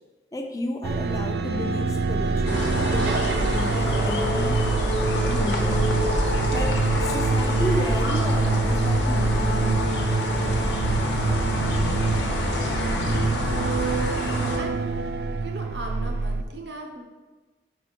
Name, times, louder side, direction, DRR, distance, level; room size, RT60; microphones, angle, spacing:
voice 1, 0.3-4.6 5.3-5.8 6.5-9.9, left 1 dB, 20° left, 4 dB, 0.5 m, -32 dB
sound 1, 0.8-16.4, right 3 dB, 60° right, 0.3 m, -25 dB
sound 2, 2.5-14.6, left 1 dB, 80° left, 1.0 m, -27 dB
voice 2, 15.4-17.0, right 2 dB, 75° right, 3 dB, 0.9 m, -37 dB
4.8 x 4.6 x 5.2 m, 1.2 s
head